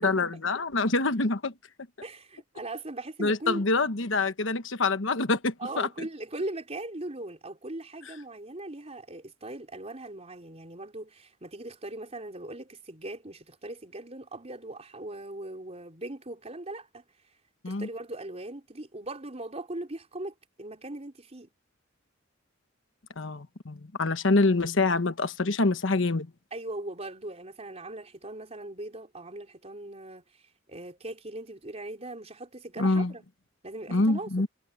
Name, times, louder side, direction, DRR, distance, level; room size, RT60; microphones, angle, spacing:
voice 1, 0.0-1.5 3.2-5.9 17.6-17.9 23.2-26.3 32.8-33.1 33.9-34.5, left 3 dB, 70° left, 1.2 m, -26 dB
voice 2, 2.0-3.6 5.6-17.0 17.7-21.5 26.5-30.2 30.7-33.2 33.6-34.3, right 2 dB, 35° right, 4.0 m, -39 dB
head